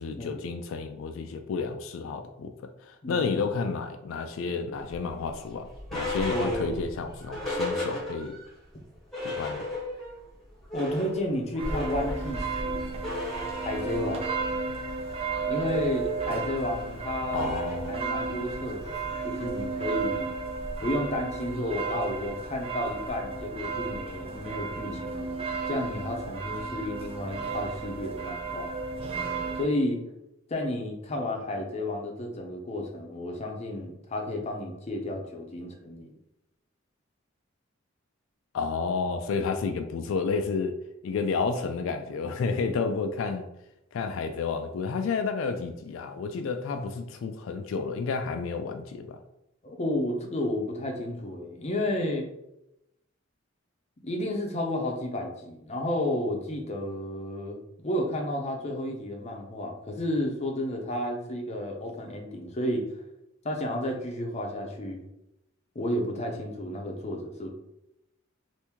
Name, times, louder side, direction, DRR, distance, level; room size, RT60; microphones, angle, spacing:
voice 1, 0.0-8.3 9.2-9.7 17.3-17.9 38.5-40.8 41.0-43.4 43.9-49.2, left 4 dB, 80° left, 7 dB, 0.3 m, -31 dB
sound 1, 4.9-8.5 8.8-8.9 9.1-10.2 10.5-21.0, left 1 dB, ahead, 1.2 m, -36 dB
voice 2, 6.3-6.8 10.7-12.9 13.6-14.3 15.5-17.5 17.9-20.3 20.8-25.4 25.7-28.7 29.6-30.0 30.5-36.1 49.6-52.3 54.0-62.9 63.4-65.1 65.7-67.5, left 1 dB, 35° left, 2 dB, 0.6 m, -32 dB
sound 2, 11.6-29.7, right 4 dB, 30° right, 0.5 m, -33 dB
3.5 x 2.6 x 2.9 m, 0.86 s
head